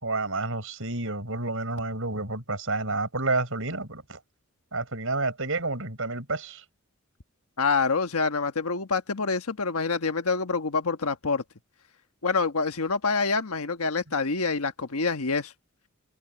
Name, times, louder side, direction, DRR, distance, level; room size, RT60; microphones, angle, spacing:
voice 1, 0.0-4.2 4.7-6.6, right 3 dB, 65° right, 5.8 m, -30 dB
voice 2, 7.6-11.4 12.2-15.5, left 4 dB, 80° left, 1.3 m, -26 dB
head